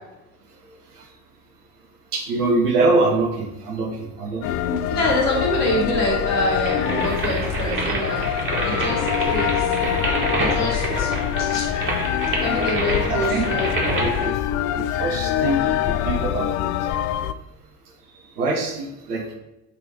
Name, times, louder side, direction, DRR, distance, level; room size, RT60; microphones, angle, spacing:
voice 1, 2.1-4.5 4.9-5.1 9.8-9.9 12.3-12.4 13.0-13.5 14.0-14.3 14.7-16.7 18.4-19.2, right 3 dB, 75° right, 2 dB, 1.4 m, -24 dB
sound 1, 4.4-17.3, left 11 dB, 45° left, 0.4 m, -25 dB
voice 2, 4.6-8.3 8.6-9.7 10.4-11.1 11.4-11.7 12.4-14.1, left 1 dB, 75° left, -3 dB, 2.0 m, -26 dB
sound 2, 6.6-14.3, right 2 dB, 25° right, 1.8 m, -27 dB
6.6 x 3.6 x 4.9 m, 0.98 s
figure-of-eight pair, 60°, 46 cm